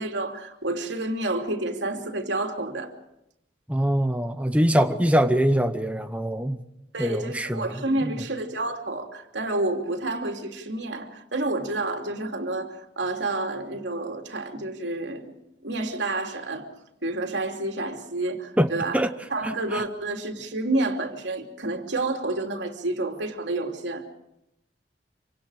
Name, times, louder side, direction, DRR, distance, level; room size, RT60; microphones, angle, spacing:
voice 1, 0.0-2.9 6.9-15.3 15.6-16.7 17.0-19.0 19.3-24.1, right 2 dB, 85° right, 3.0 m, -29 dB
voice 2, 3.7-6.6 7.0-7.8 18.6-19.1 19.4-19.8, equal, 10° right, 0.8 m, -23 dB
27.5 x 25.5 x 4.9 m
head